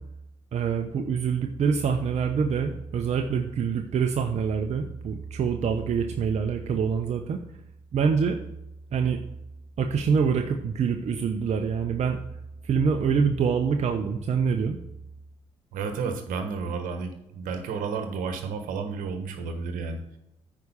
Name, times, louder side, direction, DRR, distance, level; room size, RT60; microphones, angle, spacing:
voice 1, 0.5-7.4 7.9-8.4 8.9-9.2 9.8-12.2 12.6-14.8, right 6 dB, 55° right, 4 dB, 0.8 m, -25 dB
voice 2, 15.7-20.0, right 5 dB, 75° right, 6 dB, 1.4 m, -31 dB
9.3 x 5.0 x 5.5 m, 0.85 s
supercardioid pair, 55°, 14 cm